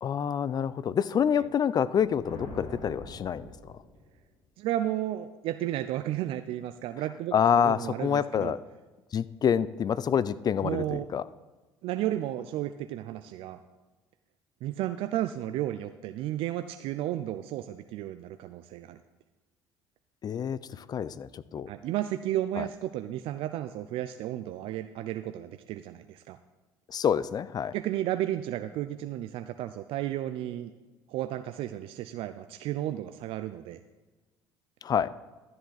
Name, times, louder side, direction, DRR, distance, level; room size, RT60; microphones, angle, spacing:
voice 1, 0.0-3.5 7.3-8.6 9.1-11.2 20.2-21.7 22.6-22.7 26.9-27.7 34.8-35.1, left 8 dB, 40° left, 18 dB, 0.5 m, -27 dB
sound 1, 1.9-4.3, left 1 dB, 65° left, 2.0 m, -44 dB
voice 2, 4.6-8.6 10.6-11.1 11.8-13.6 14.6-19.0 21.7-26.4 27.7-30.7 31.1-33.8, right 13 dB, 65° right, 9 dB, 0.4 m, -33 dB
12.5 x 7.7 x 4.0 m, 1.2 s
hypercardioid pair, 65°, 10 cm